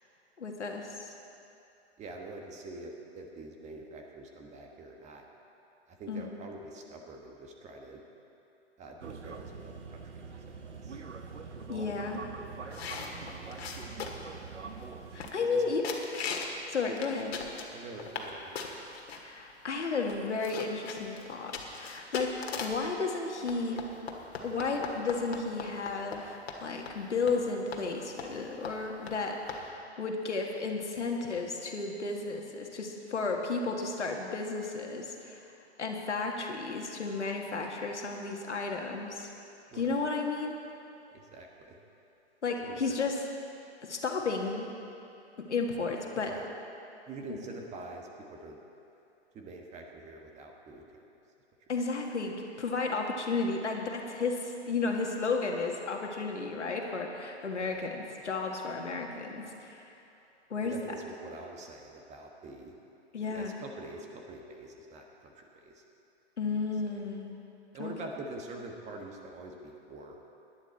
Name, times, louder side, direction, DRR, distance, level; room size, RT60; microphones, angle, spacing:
voice 1, 0.4-1.1 6.1-6.4 11.7-12.2 15.1-16.0 16.7-17.4 19.2-23.8 24.4-35.4 35.8-39.3 39.7-40.6 42.4-43.2 43.8-44.6 45.5-46.3 47.3-47.4 51.7-59.9 60.5-60.9 63.1-63.6 66.4-67.4 67.8-67.9, left 4 dB, 80° left, 1 dB, 1.9 m, -33 dB
voice 2, 2.0-5.2 5.9-8.0 8.8-11.0 12.6-13.1 14.2-14.5 15.4-15.6 17.7-18.6 39.7-39.9 41.1-41.8 42.6-43.0 46.2-46.4 47.1-48.6 49.3-51.0 57.6-57.8 60.6-62.7 63.3-65.8 67.7-70.2, right 2 dB, 20° right, 2 dB, 1.4 m, -45 dB
sound 1, 9.0-15.3, right 5 dB, 85° right, 1.1 m, -44 dB
sound 2, 12.7-14.3 14.8-14.9 15.2-15.6 15.8-16.6 16.9-18.3 18.5-19.2 19.8-19.9 20.1-22.9 23.5-26.2 26.5-26.6 26.9-27.0 27.3-27.4 27.7-27.8 28.2-28.4 28.6-28.7 29.1-29.2 29.5-29.6, left 5 dB, 60° left, 1.9 m, -39 dB
17.5 x 11.0 x 4.3 m, 2.8 s
figure-of-eight pair, 120°, 35 cm